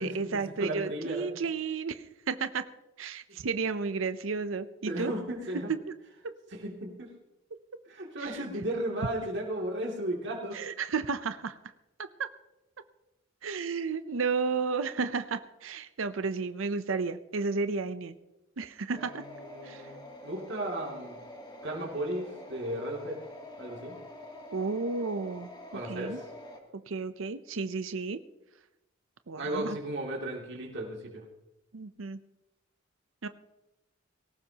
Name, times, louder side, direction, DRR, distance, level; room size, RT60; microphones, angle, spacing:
voice 1, 0.0-2.7 3.0-5.1 5.9-6.0 8.2-8.4 10.5-11.6 13.4-18.2 18.6-19.2 19.6-19.9 24.5-25.5 25.8-26.2 26.9-28.2 29.3-29.8 31.7-32.2 33.2-33.3, right 4 dB, 85° right, 11 dB, 0.6 m, -32 dB
voice 2, 0.6-1.4 3.3-3.4 4.9-5.7 6.5-7.1 7.9-10.6 18.9-20.0 20.2-21.2 21.6-23.2 23.6-24.0 25.7-26.3 29.4-31.2, right 1 dB, 65° right, -2 dB, 2.6 m, -35 dB
sound 1, 18.9-26.6, left 1 dB, 25° left, 2.7 m, -46 dB
19.0 x 18.0 x 2.9 m, 0.97 s
head